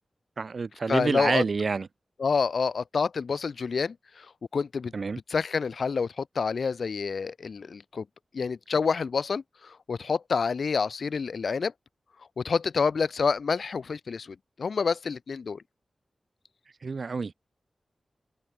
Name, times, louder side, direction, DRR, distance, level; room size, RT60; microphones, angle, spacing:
voice 1, 0.4-1.9 4.9-5.2 16.8-17.3, right 4 dB, 60° right, 0.5 m, -28 dB
voice 2, 0.9-1.4 2.2-4.3 4.5-4.9 5.3-8.0 8.3-11.7 12.4-15.6, left 5 dB, 75° left, 0.6 m, -28 dB
open air
wide cardioid pair, 70°, 0 cm